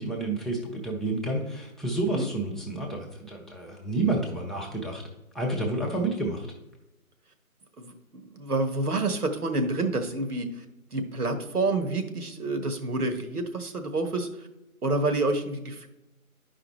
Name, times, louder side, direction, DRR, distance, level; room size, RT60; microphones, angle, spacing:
voice 1, 0.0-5.0 5.3-6.5, right 2 dB, ahead, -2 dB, 0.5 m, -29 dB
voice 2, 7.8-10.6 10.9-14.5 14.8-15.9, right 2 dB, 85° right, 7 dB, 1.3 m, -28 dB
11.5 x 4.9 x 3.1 m, 0.95 s
figure-of-eight pair, 170°, 44 cm